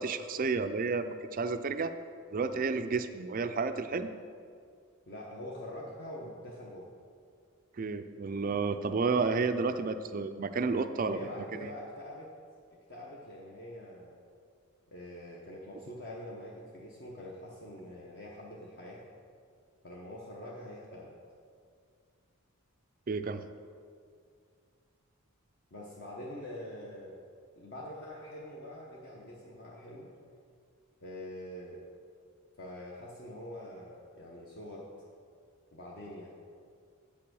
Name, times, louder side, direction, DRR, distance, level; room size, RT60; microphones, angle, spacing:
voice 1, 0.0-1.9 2.3-4.1 7.8-11.2 11.6-11.7 23.1-23.4, right 4 dB, 40° right, 9 dB, 0.4 m, -31 dB
voice 2, 5.1-6.9 11.0-12.3 12.9-14.2 14.9-19.0 19.8-21.1 25.7-27.2 27.6-30.1 31.0-31.8 32.6-34.8 35.7-36.3, left 1 dB, 45° left, -4 dB, 1.0 m, -44 dB
8.4 x 5.8 x 6.2 m, 2.2 s
head